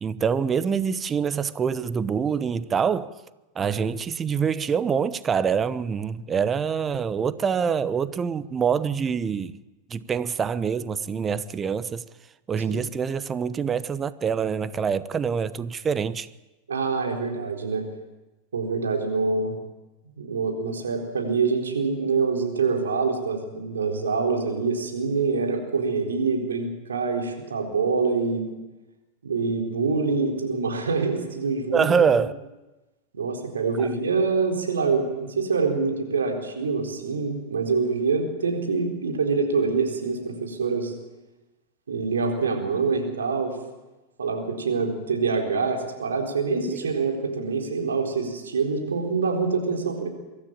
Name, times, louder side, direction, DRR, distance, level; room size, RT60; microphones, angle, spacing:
voice 1, 0.0-3.1 3.6-9.6 9.9-12.0 12.5-16.3 31.7-32.3 33.8-33.9 46.7-46.9, right 6 dB, 25° right, 0.9 m, -25 dB
voice 2, 16.7-17.8 18.5-19.6 20.0-28.5 29.2-31.9 33.1-40.9 41.9-43.6 44.2-50.1, right 4 dB, 80° right, 4.1 m, -25 dB
24.0 x 13.5 x 8.9 m
hypercardioid pair, 90°, 0 cm